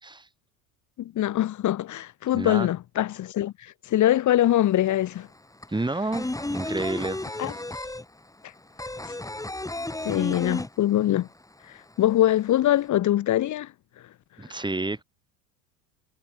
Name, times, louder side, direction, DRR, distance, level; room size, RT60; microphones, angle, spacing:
voice 1, 1.0-5.3 7.4-7.5 10.0-11.3 12.0-13.7, left 13 dB, 45° left, 2.3 m, -23 dB
voice 2, 2.3-2.7 5.7-7.9 14.4-15.0, right 2 dB, 10° right, 6.8 m, -30 dB
sound 1, 4.4-4.5 4.7-11.3 11.6-11.7 12.0-12.8, left 2 dB, 10° left, 7.1 m, -33 dB
hypercardioid pair, 85°, 43 cm